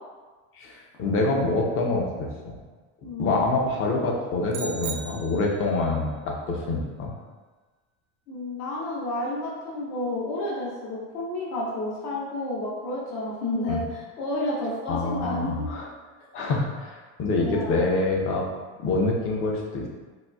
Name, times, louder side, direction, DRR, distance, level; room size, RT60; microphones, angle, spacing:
voice 1, 0.5-2.3 3.2-7.1 13.7-13.8 14.9-15.9 16.3-18.5 18.8-19.9, left 2 dB, 35° left, 0 dB, 0.5 m, -26 dB
voice 2, 3.0-3.4 8.3-15.7 17.4-17.9, left 1 dB, 65° left, -5 dB, 0.9 m, -31 dB
sound 1, 4.5-5.8, right 5 dB, 50° right, 0.4 m, -37 dB
4.0 x 2.4 x 2.3 m, 1.3 s
cardioid pair, 150°, 35 cm